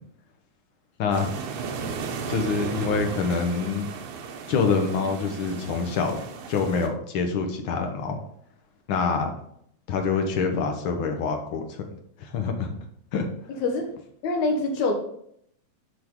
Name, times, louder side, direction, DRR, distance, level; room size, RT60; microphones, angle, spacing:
sound 1, 1.1-6.9, right 5 dB, 90° right, 2.4 m, -35 dB
voice 1, 2.3-3.9 4.5-8.2 8.9-9.3 9.9-11.8 12.2-12.7 13.1-13.3, left 5 dB, 65° left, 5 dB, 1.4 m, -26 dB
voice 2, 14.2-14.9, left 3 dB, 80° left, 3 dB, 2.6 m, -24 dB
9.4 x 5.1 x 3.7 m, 0.70 s
omnidirectional pair, 3.3 m